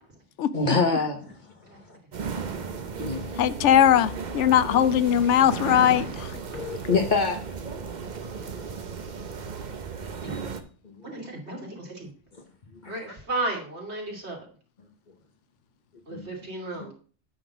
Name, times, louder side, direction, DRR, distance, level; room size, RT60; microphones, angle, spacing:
voice 1, 0.5-1.3 3.0-3.3 6.5-7.4 8.0-8.1 10.8-11.1 12.8-13.2 16.1-16.2, left 3 dB, 45° left, 1.2 m, -26 dB
sound 1, 2.1-10.6, right 5 dB, 45° right, 0.8 m, -35 dB
voice 2, 3.4-6.3, left 10 dB, 85° left, 0.9 m, -20 dB
voice 3, 10.2-10.5 11.0-12.1 12.9-14.4 16.1-16.9, right 2 dB, 70° right, 2.9 m, -34 dB
9.1 x 3.8 x 7.0 m
omnidirectional pair, 1.2 m